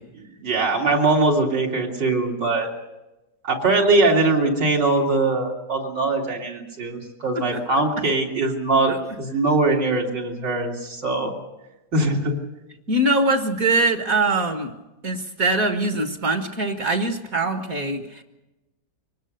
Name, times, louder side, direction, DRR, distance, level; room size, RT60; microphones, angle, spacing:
voice 1, 0.1-2.7 3.4-11.3 11.9-12.4, right 2 dB, 75° right, -1 dB, 3.7 m, -21 dB
voice 2, 12.9-14.7 15.0-18.2, right 2 dB, 50° right, 5 dB, 1.9 m, -22 dB
24.0 x 19.5 x 6.6 m, 1.0 s
omnidirectional pair, 1.9 m